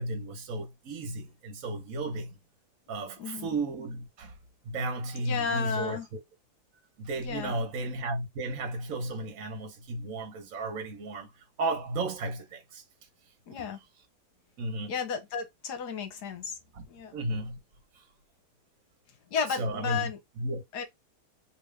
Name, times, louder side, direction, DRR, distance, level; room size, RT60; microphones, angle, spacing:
voice 1, 0.0-2.4 2.9-4.4 4.6-6.2 7.0-11.3 11.6-12.8 14.6-14.9 16.7-16.8 17.1-17.6 17.9-18.0 19.6-20.1 20.4-20.6, right 2 dB, 60° right, 1.2 m, -34 dB
voice 2, 3.2-3.6 5.2-6.1 7.2-7.6 13.5-13.8 14.9-16.6 16.9-17.2 19.3-20.2 20.7-20.8, left 6 dB, 75° left, 1.5 m, -33 dB
3.5 x 2.8 x 3.2 m
omnidirectional pair, 1.8 m